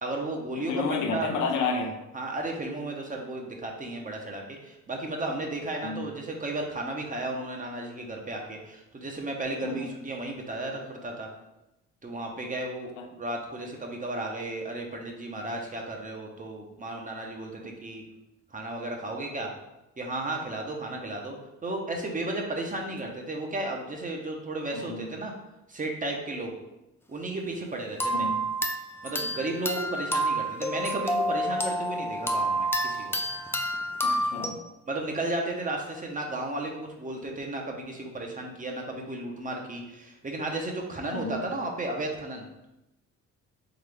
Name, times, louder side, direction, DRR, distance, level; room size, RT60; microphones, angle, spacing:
voice 1, 0.0-0.8 1.1-1.4 2.1-11.3 12.0-12.9 13.2-18.0 18.5-19.5 20.0-21.4 21.6-25.3 25.7-26.5 27.1-28.3 29.0-33.2 34.9-42.5, right 2 dB, 25° right, 1 dB, 0.9 m, -34 dB
voice 2, 0.6-1.9 5.8-6.1 9.6-9.9 13.0-13.1 24.7-25.1 28.1-28.4 34.0-34.6 41.1-41.4, left 4 dB, 90° left, 3 dB, 0.7 m, -31 dB
sound 1, 28.0-34.5, equal, 10° left, 0.4 m, -29 dB
3.9 x 3.6 x 3.3 m, 0.94 s
cardioid pair, 90°, 30 cm